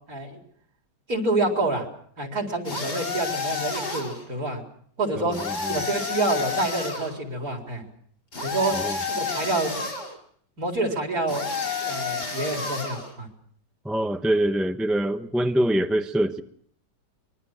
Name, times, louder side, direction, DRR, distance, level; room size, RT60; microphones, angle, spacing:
voice 1, 0.1-0.4 1.1-1.9 2.2-4.6 5.0-5.4 5.7-7.8 8.4-8.8 9.1-9.8 10.6-11.5 11.8-13.3, right 2 dB, 55° right, 4.6 m, -27 dB
sound 1, 2.7-4.2 5.3-7.1 8.3-10.1 11.3-13.1, left 5 dB, 70° left, 5.8 m, -30 dB
voice 2, 5.2-5.8 8.7-9.0 13.8-16.4, right 1 dB, ahead, 0.7 m, -24 dB
24.5 x 23.0 x 6.3 m
omnidirectional pair, 1.8 m